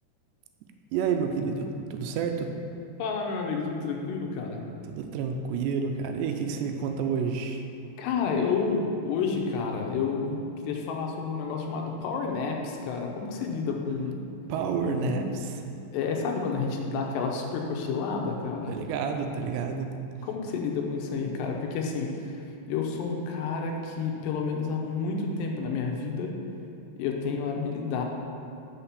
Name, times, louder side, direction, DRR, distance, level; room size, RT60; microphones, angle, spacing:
voice 1, 0.9-1.7 1.9-2.5 4.9-7.6 14.5-15.3 18.7-19.9, right 6 dB, 85° right, 5 dB, 2.7 m, -29 dB
voice 2, 3.0-4.6 8.0-14.2 14.9-15.3 15.9-18.8 20.2-22.3 22.7-26.3 27.0-28.1, left 5 dB, 90° left, 1 dB, 2.9 m, -30 dB
6.5 x 5.8 x 6.9 m, 2.6 s
omnidirectional pair, 4.9 m